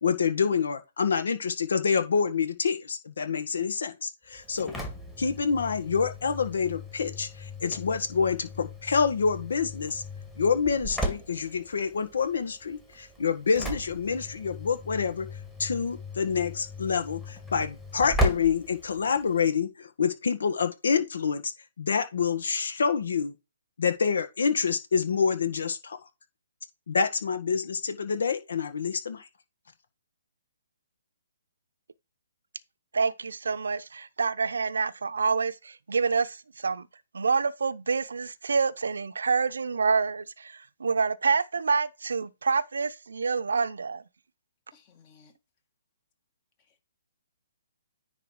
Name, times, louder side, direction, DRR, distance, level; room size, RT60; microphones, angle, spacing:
voice 1, 0.0-4.8 5.2-10.0 10.4-15.3 15.6-21.5 21.8-23.3 23.8-26.0 26.9-29.3, left 6 dB, 70° left, 1.6 m, -27 dB
Engine / Slam, 4.3-19.5, equal, 5° left, 1.9 m, -36 dB
voice 2, 32.9-36.9 37.1-44.0, right 5 dB, 75° right, 0.7 m, -27 dB
voice 3, 44.7-45.3 46.7-46.8, left 5 dB, 35° left, 2.1 m, -58 dB
10.0 x 3.4 x 4.7 m
hypercardioid pair, 140°, 0 cm